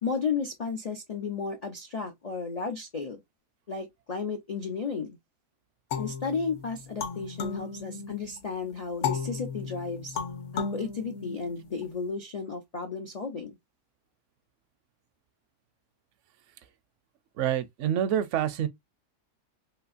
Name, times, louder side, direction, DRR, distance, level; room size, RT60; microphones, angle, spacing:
voice 1, 0.0-3.2 3.7-5.2 6.0-10.2 10.5-13.6, left 5 dB, 85° left, 0.3 m, -33 dB
sound 1, 5.9-8.4 9.0-11.8, left 6 dB, 55° left, 1.0 m, -35 dB
voice 2, 17.4-18.7, right 10 dB, 70° right, 0.7 m, -27 dB
3.7 x 2.8 x 2.4 m
omnidirectional pair, 1.7 m